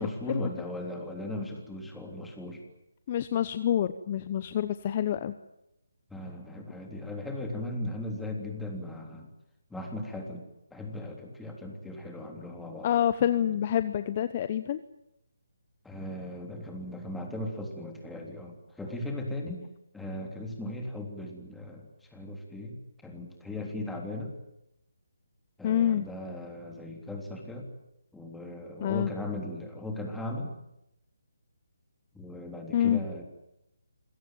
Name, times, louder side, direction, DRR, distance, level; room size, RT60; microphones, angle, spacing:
voice 1, 0.0-2.6 6.1-9.3 9.7-12.9 15.8-19.7 19.9-22.8 23.0-24.4 25.6-27.7 28.1-30.5 32.1-33.2, left 1 dB, 5° left, 1 dB, 3.4 m, -37 dB
voice 2, 3.1-5.3 12.8-14.8 25.6-26.0 28.8-29.1 32.7-33.0, left 10 dB, 30° left, 12 dB, 0.9 m, -27 dB
27.0 x 17.5 x 9.3 m, 0.84 s
hypercardioid pair, 160°, 0 cm